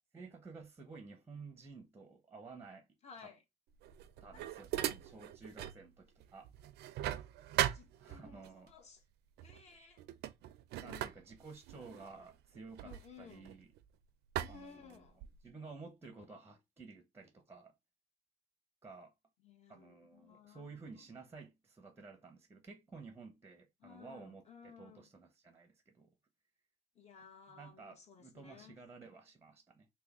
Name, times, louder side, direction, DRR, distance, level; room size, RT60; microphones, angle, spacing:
voice 1, 0.1-2.9 3.2-3.3 4.2-6.5 8.0-8.7 10.8-13.7 14.5-15.1 15.4-17.7 18.8-19.1 19.7-26.1 27.5-29.9, right 4 dB, 15° right, 0.7 m, -53 dB
voice 2, 3.0-3.4 4.7-4.8 7.7-9.0 9.4-10.0 10.8-11.2 12.8-13.5 14.4-15.3 19.4-20.8 23.8-25.1 26.9-28.8, left 6 dB, 40° left, 1.2 m, -57 dB
sound 1, 3.8-5.8 6.2-8.5 9.4-9.6 10.0-13.8 14.3-15.5, right 12 dB, 75° right, 0.4 m, -39 dB
3.4 x 2.2 x 3.5 m
cardioid pair, 110°, 17 cm